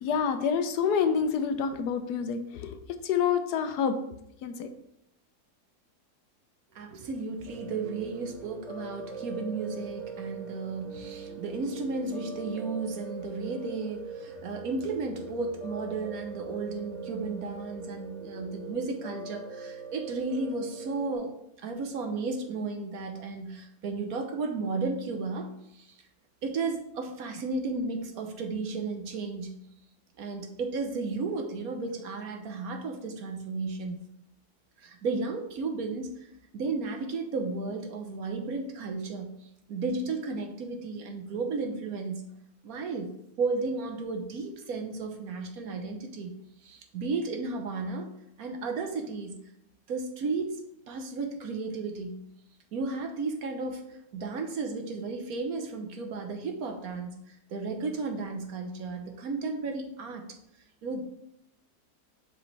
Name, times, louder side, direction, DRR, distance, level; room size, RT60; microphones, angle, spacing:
voice 1, 0.0-4.0 4.4-4.7, left 7 dB, 75° left, 8 dB, 1.2 m, -27 dB
voice 2, 6.7-26.0 26.4-29.6 30.2-34.0 34.8-42.3 42.6-43.1 43.4-46.3 46.6-48.1 48.4-49.4 49.9-50.6 50.9-52.2 52.7-60.3 60.8-61.0, right 3 dB, 65° right, 4 dB, 1.2 m, -34 dB
Piano, 7.4-21.2, right 4 dB, 45° right, 1.6 m, -41 dB
7.6 x 5.1 x 3.3 m, 0.77 s
omnidirectional pair, 1.8 m